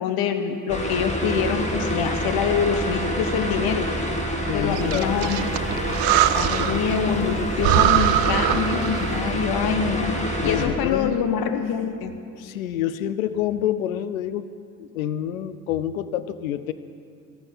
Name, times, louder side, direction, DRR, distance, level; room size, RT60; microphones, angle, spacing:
voice 1, 0.0-3.9 4.5-5.5 6.3-10.1 10.4-12.1, left 7 dB, 60° left, 8 dB, 1.3 m, -25 dB
sound 1, 0.7-10.7, equal, 15° left, 2.1 m, -27 dB
voice 2, 4.5-5.3 6.4-6.8 10.4-11.4 12.4-14.5 14.8-16.7, left 11 dB, 85° left, 14 dB, 0.6 m, -28 dB
Breathing, 4.7-6.9 7.2-7.3 7.6-9.3, right 13 dB, 60° right, 0.6 m, -22 dB
15.0 x 11.5 x 5.8 m, 2.3 s
hypercardioid pair, 50°, 41 cm